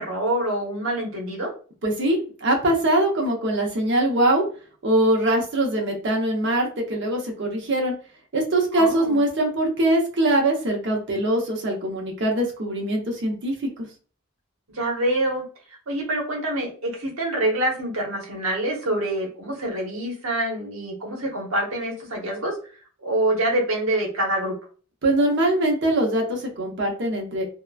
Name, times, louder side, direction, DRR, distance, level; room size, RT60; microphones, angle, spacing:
voice 1, 0.0-1.5 8.7-9.2 14.7-15.4 15.9-22.5 23.0-24.5, right 1 dB, 85° right, -1 dB, 1.0 m, -26 dB
voice 2, 1.8-4.4 4.8-7.9 8.3-13.9 25.0-27.4, right 1 dB, 60° right, 1 dB, 0.8 m, -22 dB
2.9 x 2.1 x 2.3 m, 0.39 s
head